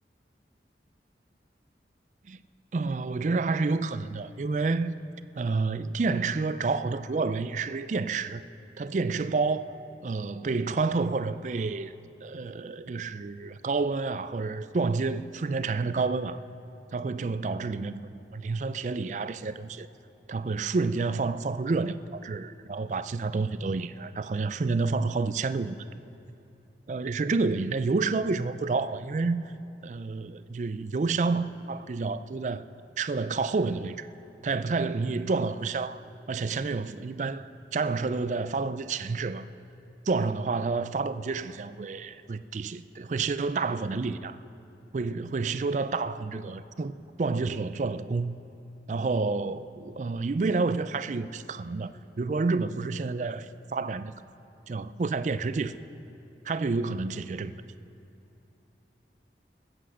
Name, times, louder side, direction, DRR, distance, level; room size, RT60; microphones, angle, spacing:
voice 1, 2.7-4.9 5.4-8.4 8.8-9.7 10.0-11.9 12.2-16.4 16.9-19.9 20.3-25.8 26.9-29.4 29.8-32.7 33.0-34.1 34.4-39.5 40.1-44.4 44.9-48.4 48.9-51.9 52.2-54.1 54.7-55.8 56.4-57.5, right 4 dB, 40° right, 0.4 m, -29 dB
20.5 x 8.0 x 6.3 m
head